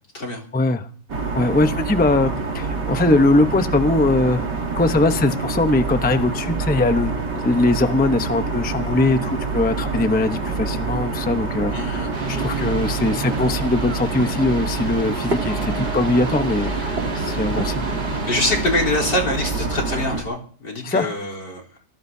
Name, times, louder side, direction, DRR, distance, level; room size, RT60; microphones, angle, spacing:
voice 1, 0.5-0.9 1.3-4.4 4.8-17.9 20.8-21.1, left 2 dB, 10° left, 8 dB, 0.5 m, -21 dB
sound 1, 1.1-20.2, right 4 dB, 80° right, 3.1 m, -26 dB
voice 2, 11.7-12.1 18.3-21.6, left 2 dB, 85° left, 3 dB, 4.5 m, -24 dB
sound 2, 12.1-18.9, right 2 dB, 35° right, 2.1 m, -31 dB
25.5 x 18.0 x 2.8 m, 0.43 s
omnidirectional pair, 1.8 m